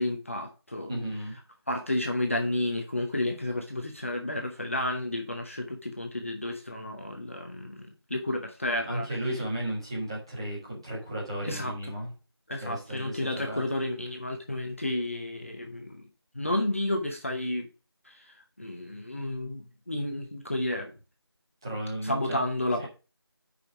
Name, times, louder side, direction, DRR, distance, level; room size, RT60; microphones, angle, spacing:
voice 1, 0.0-0.9 1.7-9.2 11.4-11.7 12.5-16.0 16.3-17.7 18.1-18.3 18.6-20.9 22.0-22.9, left 1 dB, 30° left, 3 dB, 1.0 m, -31 dB
voice 2, 0.9-1.3 8.9-12.1 12.6-13.6 21.6-22.4 22.8-22.9, right 1 dB, 10° right, -6 dB, 1.7 m, -34 dB
6.6 x 5.5 x 5.8 m, 0.32 s
figure-of-eight pair, 175°, 14 cm